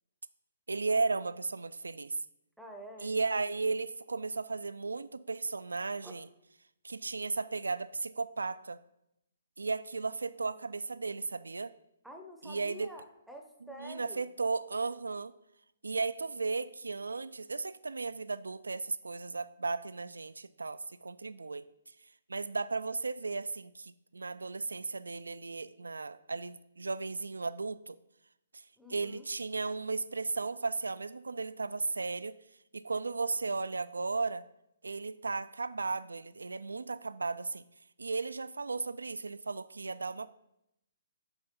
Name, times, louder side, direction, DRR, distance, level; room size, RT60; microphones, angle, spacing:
voice 1, 0.7-2.2 3.0-6.3 6.8-8.8 9.6-11.7 12.4-12.9 13.8-15.3 15.8-21.7 22.3-28.0 28.5-28.6 28.9-32.4 32.7-34.4 34.8-37.6 38.0-40.4, right 3 dB, 90° right, 14 dB, 0.3 m, -35 dB
voice 2, 2.6-3.1 6.0-6.1 12.0-14.2 28.8-29.3, right 1 dB, ahead, 2 dB, 0.9 m, -48 dB
7.9 x 3.4 x 5.3 m, 0.82 s
hypercardioid pair, 140°, 0 cm